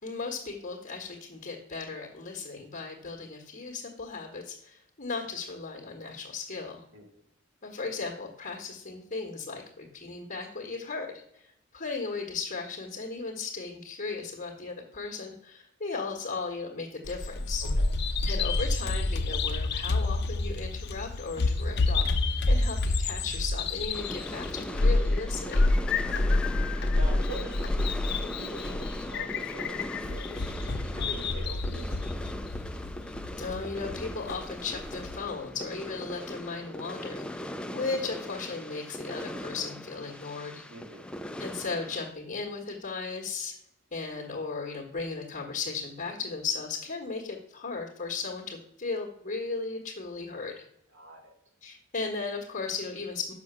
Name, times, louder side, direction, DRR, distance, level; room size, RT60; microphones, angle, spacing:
voice 1, 0.0-6.8 7.6-17.6 18.3-22.1 22.4-25.7 33.4-40.6 41.4-43.5 43.9-50.6 51.6-53.3, left 4 dB, 40° left, 0 dB, 1.4 m, -36 dB
Bird vocalization bird call bird song, 17.1-35.2, left 2 dB, 55° left, 0.7 m, -28 dB
sound 1, 23.9-42.1, left 1 dB, 5° left, 0.4 m, -40 dB
voice 2, 25.9-26.4 26.7-31.9 40.7-41.1 50.9-51.3, right 1 dB, 75° right, 1 dB, 2.3 m, -44 dB
6.5 x 6.0 x 6.8 m, 0.74 s
head